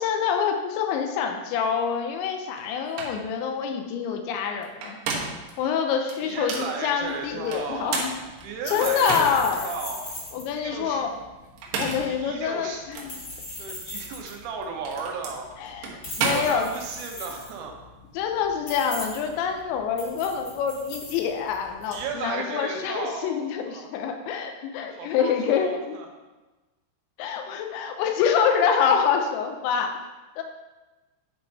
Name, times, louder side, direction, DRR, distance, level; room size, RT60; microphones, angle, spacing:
voice 1, 0.0-5.0 5.6-8.1 8.7-9.7 10.3-11.1 11.7-13.2 15.7-15.9 16.2-16.7 18.2-25.9 27.2-30.0 30.4-30.5, left 7 dB, 80° left, 4 dB, 2.8 m, -26 dB
sound 1, 2.6-2.7 3.0-3.2 4.6-5.5 6.1-6.7 7.5-9.6 10.1-10.2 11.5-12.2 12.9-13.1 14.3-17.0, right 4 dB, 70° right, 2.9 m, -31 dB
voice 2, 6.2-8.2 8.4-10.2 10.5-11.0 12.0-12.8 13.1-13.2 13.6-15.8 16.2-17.9 21.9-23.9 24.9-26.1, right 5 dB, 85° right, 2 dB, 3.8 m, -35 dB
sound 2, 7.0-22.1, left 2 dB, 45° left, 1.6 m, -40 dB
10.5 x 5.2 x 4.1 m, 1.2 s
omnidirectional pair, 5.8 m